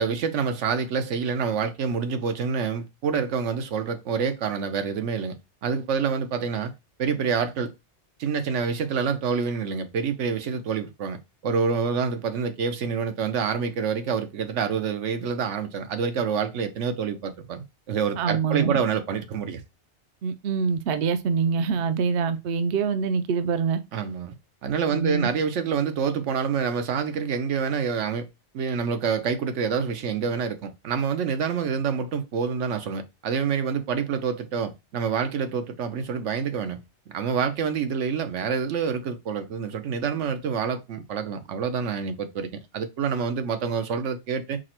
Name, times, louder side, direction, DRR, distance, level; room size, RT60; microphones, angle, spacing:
voice 1, 0.0-5.4 5.6-6.7 7.0-7.7 8.2-19.6 23.9-24.4 24.6-28.3 28.5-36.8 37.1-44.6, right 6 dB, 85° right, 1.1 m, -27 dB
voice 2, 18.2-18.8 20.2-23.8 24.9-25.3, right 5 dB, 65° right, 0.7 m, -25 dB
4.9 x 2.1 x 4.3 m
omnidirectional pair, 1.2 m